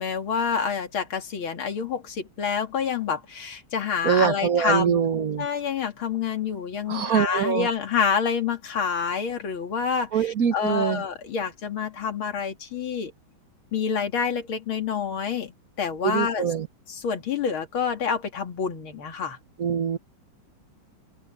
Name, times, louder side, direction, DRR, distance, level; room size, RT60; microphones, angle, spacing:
voice 1, 0.0-5.0 5.4-13.1 13.7-16.5 16.9-19.4, left 6 dB, 85° left, 3.0 m, -27 dB
voice 2, 4.0-5.5 6.9-7.7 10.1-11.0 16.0-16.7 19.6-20.0, right 7 dB, 50° right, 1.4 m, -23 dB
omnidirectional pair, 2.2 m